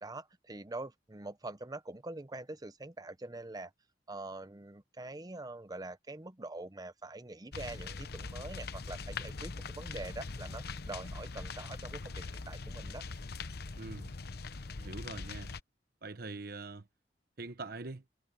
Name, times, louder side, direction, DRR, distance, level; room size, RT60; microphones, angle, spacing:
voice 1, 0.0-3.7 4.1-13.0, right 2 dB, 20° right, 0.9 m, -44 dB
sound 1, 7.5-15.6, left 4 dB, 60° left, 0.9 m, -42 dB
voice 2, 13.8-14.1 14.8-15.5 16.0-16.8 17.4-18.0, right 3 dB, 60° right, 1.0 m, -43 dB
head